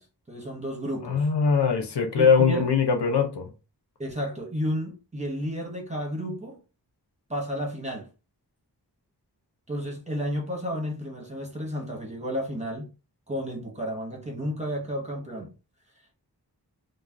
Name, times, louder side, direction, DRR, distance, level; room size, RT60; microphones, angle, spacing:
voice 1, 0.0-1.3 2.1-2.7 4.0-6.6 7.3-8.1 9.7-12.9 13.3-15.5, equal, 15° right, 0.9 m, -32 dB
voice 2, 1.0-3.5, left 5 dB, 80° left, 0.6 m, -22 dB
2.4 x 2.0 x 3.3 m
wide cardioid pair, 55°, 40 cm